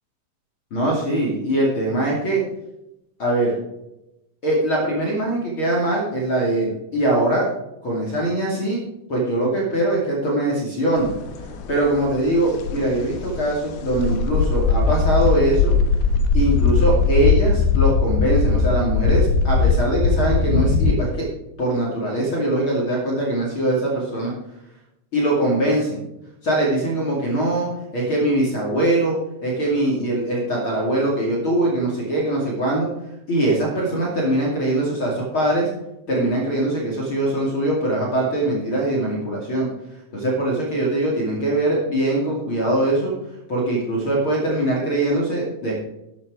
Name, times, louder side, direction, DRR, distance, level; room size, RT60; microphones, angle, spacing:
voice 1, 0.7-2.4 3.2-3.6 4.4-7.5 7.8-8.8 9.1-11.1 11.7-15.7 16.3-21.3 21.6-24.3 25.1-26.0 26.4-29.2 29.4-32.9 33.3-35.7 36.1-39.7 40.1-43.1 43.5-45.7, right 1 dB, 35° left, -4 dB, 2.5 m, -22 dB
sound 1, 11.0-20.9, left 4 dB, 70° left, 2.4 m, -20 dB
12.5 x 9.5 x 4.9 m, 0.88 s
omnidirectional pair, 5.4 m